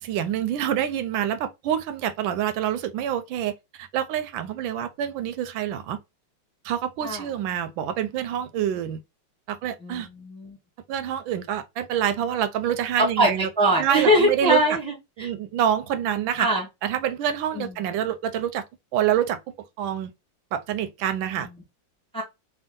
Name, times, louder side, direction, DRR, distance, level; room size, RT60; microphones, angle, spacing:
voice 1, 0.0-6.0 6.6-9.0 9.5-10.1 10.9-13.5 13.8-14.8 15.2-16.5 16.8-18.6 18.9-19.4 19.8-20.1 20.5-21.5, right 10 dB, 90° right, 1.3 m, -26 dB
voice 2, 9.8-10.6 13.2-13.3 13.6-15.3 16.4-16.6 17.5-17.7 21.4-21.5 22.1-22.2, equal, 5° left, 0.8 m, -22 dB
3.6 x 2.2 x 3.6 m
omnidirectional pair, 2.1 m